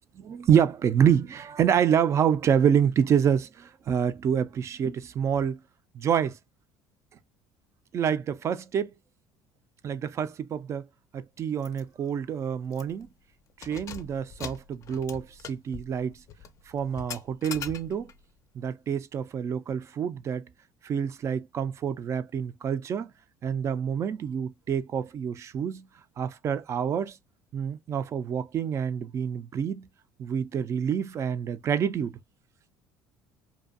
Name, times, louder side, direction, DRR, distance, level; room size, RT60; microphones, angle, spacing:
voice 1, 0.2-5.6 5.9-6.4 7.9-8.9 9.8-10.8 11.1-13.1 13.6-16.2 16.7-18.1 18.6-20.5 20.8-23.1 23.4-25.9 26.2-27.2 27.5-29.9 30.2-32.1, right 8 dB, 40° right, 0.3 m, -27 dB
Keys jangling, 11.6-11.8 12.2-12.3 12.7-13.1 13.5-18.2, left 6 dB, 40° left, 0.4 m, -42 dB
2.5 x 2.2 x 2.4 m
cardioid pair, 110°, 8 cm